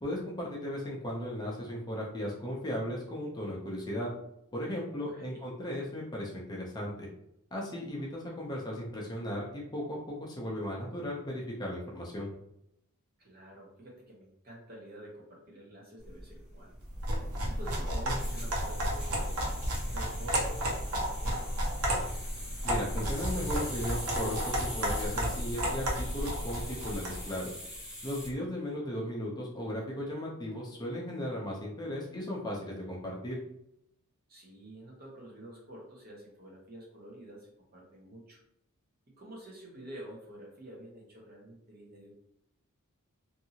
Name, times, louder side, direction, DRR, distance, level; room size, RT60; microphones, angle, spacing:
voice 1, 0.0-4.1 4.5-7.1 7.5-12.3 22.6-27.5 28.0-33.4, equal, 20° left, -3 dB, 0.6 m, -36 dB
voice 2, 5.0-5.4 13.2-16.8 17.4-22.2 34.3-38.4 39.1-42.1, right 1 dB, 40° right, -3 dB, 0.9 m, -49 dB
sound 1, 16.0-28.3, left 1 dB, 5° right, 0.9 m, -44 dB
sound 2, 16.9-27.2, equal, 80° right, 0.8 m, -32 dB
2.7 x 2.6 x 2.8 m, 0.78 s
head